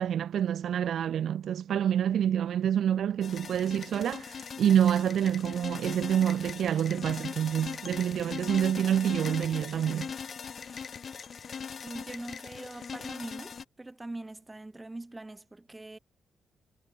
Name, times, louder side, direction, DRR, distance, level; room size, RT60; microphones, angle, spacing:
voice 1, 0.0-10.1, right 9 dB, 70° right, 2.6 m, -27 dB
sound 1, 3.2-13.6, left 6 dB, 45° left, 3.3 m, -40 dB
voice 2, 11.8-16.0, right 2 dB, 15° right, 3.3 m, -42 dB
wide cardioid pair, 135°, 0 cm